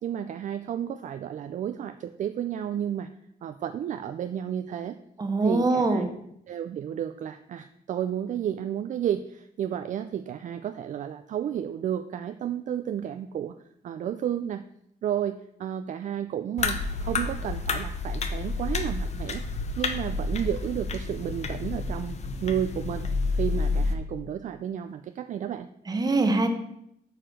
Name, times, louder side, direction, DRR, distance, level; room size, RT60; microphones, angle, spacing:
voice 1, 0.0-3.1 3.4-5.0 5.4-6.1 6.5-13.5 13.8-14.6 15.0-19.4 19.8-25.7, right 9 dB, 50° right, 10 dB, 0.4 m, -32 dB
voice 2, 5.2-6.1 25.9-26.5, right 2 dB, 25° right, 6 dB, 1.0 m, -23 dB
sound 1, 16.6-23.9, left 3 dB, 40° left, 0.8 m, -29 dB
7.8 x 4.8 x 6.4 m, 0.76 s
wide cardioid pair, 160°, 17 cm